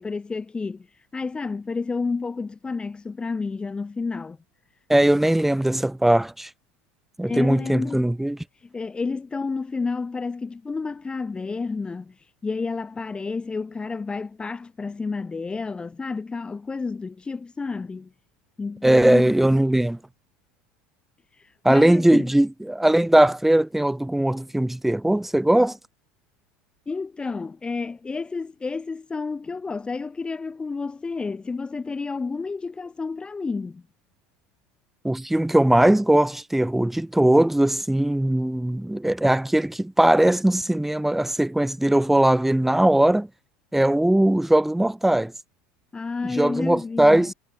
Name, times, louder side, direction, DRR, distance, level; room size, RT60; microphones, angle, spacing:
voice 1, 0.0-4.4 7.2-8.1 8.5-18.1 18.6-19.4 21.3-22.3 26.9-33.8 45.9-47.3, left 4 dB, 20° left, 2.3 m, -30 dB
voice 2, 4.9-6.5 7.2-8.4 18.8-20.0 21.6-25.8 35.0-43.3 43.7-45.3 46.4-47.3, right 1 dB, 5° right, 1.7 m, -20 dB
supercardioid pair, 100°, 5 cm